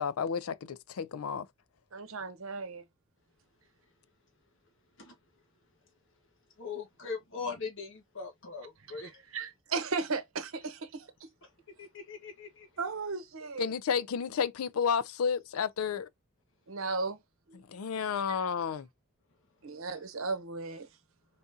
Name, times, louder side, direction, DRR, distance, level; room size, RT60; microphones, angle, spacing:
voice 1, 0.0-1.5 13.6-16.1 17.7-18.9, left 6 dB, 85° left, 0.5 m, -31 dB
voice 2, 1.9-2.8 9.3-11.1 12.8-13.7 16.7-17.2 17.5-17.6 18.3-18.4 19.6-20.9, right 4 dB, 70° right, 0.9 m, -35 dB
voice 3, 6.6-9.2 11.4-11.5 11.8-12.7, left 5 dB, 60° left, 1.4 m, -40 dB
4.1 x 3.6 x 2.6 m
head